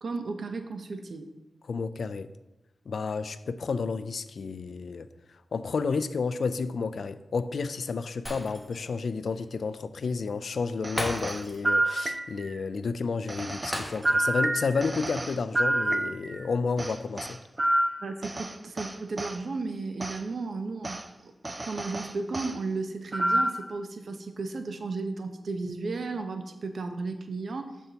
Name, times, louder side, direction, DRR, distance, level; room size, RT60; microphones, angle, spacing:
voice 1, 0.0-1.3 18.0-21.3 21.6-27.8, right 3 dB, 70° right, 0.8 m, -34 dB
voice 2, 1.7-2.3 2.9-5.1 5.5-17.4, left 4 dB, 75° left, 0.4 m, -31 dB
Shatter, 8.3-9.0 9.3-9.4 11.0-11.7 12.0-12.2 13.7-14.4 14.8-14.9, equal, 5° left, 1.9 m, -36 dB
sound 1, 10.8-12.6 13.3-16.4 16.8-19.4 20.0-20.2 20.8-21.0 21.4-22.6 23.1-23.7, right 1 dB, 30° right, 0.5 m, -29 dB
13.5 x 4.5 x 2.9 m
cardioid pair, 60°, 0 cm